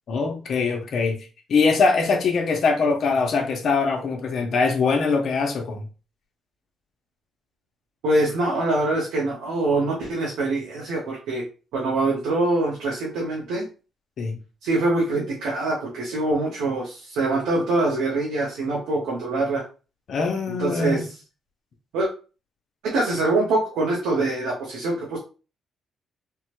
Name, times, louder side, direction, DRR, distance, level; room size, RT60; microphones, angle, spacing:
voice 1, 0.1-1.2 1.5-5.8 14.2-14.4 20.1-21.0, left 4 dB, 60° left, 0.7 m, -22 dB
voice 2, 8.0-11.4 11.7-13.6 14.6-19.6 20.5-21.0 21.9-22.1 22.8-25.2, right 2 dB, 90° right, 0.9 m, -24 dB
3.4 x 2.1 x 3.0 m
cardioid pair, 90°, 0 cm